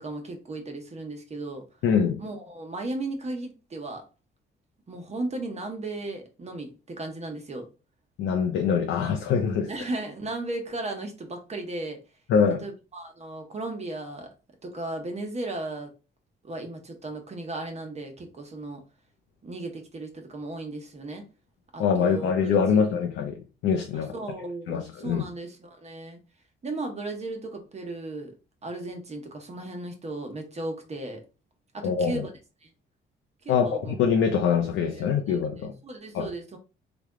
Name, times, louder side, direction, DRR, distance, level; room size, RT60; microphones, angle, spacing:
voice 1, 0.0-1.7 2.2-4.0 4.9-7.7 9.7-12.0 12.6-14.3 14.6-15.9 16.4-18.8 19.4-21.2 21.7-23.0 23.9-26.2 26.6-28.3 28.6-31.2 31.7-32.3 32.6-32.7 33.4-33.9 34.9-35.4 35.8-36.6, right 2 dB, 35° right, 0.9 m, -36 dB
voice 2, 1.8-2.2 8.2-9.7 12.3-12.6 21.8-24.1 24.7-25.2 31.8-32.2 33.5-35.7 36.1-36.3, left 6 dB, 80° left, 0.6 m, -24 dB
3.3 x 2.2 x 3.6 m
cardioid pair, 90°, 20 cm